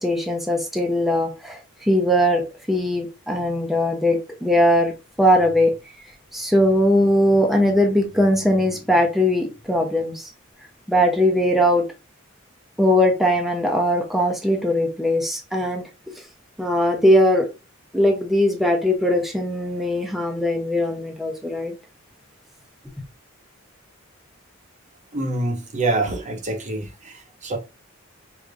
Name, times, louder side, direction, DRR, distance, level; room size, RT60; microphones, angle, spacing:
voice 1, 0.0-2.4 2.7-4.9 5.2-5.7 6.3-10.3 10.9-11.8 12.8-15.8 16.6-17.5 17.9-21.7, left 1 dB, ahead, 0.6 m, -20 dB
voice 2, 25.1-27.6, right 2 dB, 35° right, 0.7 m, -26 dB
4.9 x 2.8 x 2.4 m
head